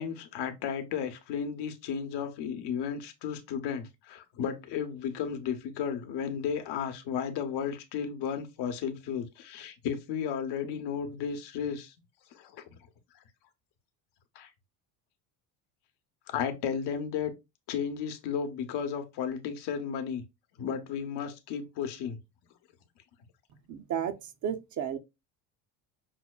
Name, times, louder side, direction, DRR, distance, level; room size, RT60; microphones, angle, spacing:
voice 1, 0.0-11.9 12.3-12.7 14.4-14.5 16.3-17.3 17.7-20.2 20.6-22.2, left 7 dB, 65° left, 0.9 m, -34 dB
voice 2, 23.7-24.1 24.4-25.0, right 9 dB, 45° right, 0.6 m, -32 dB
5.7 x 2.1 x 2.3 m
supercardioid pair, 105°, 44 cm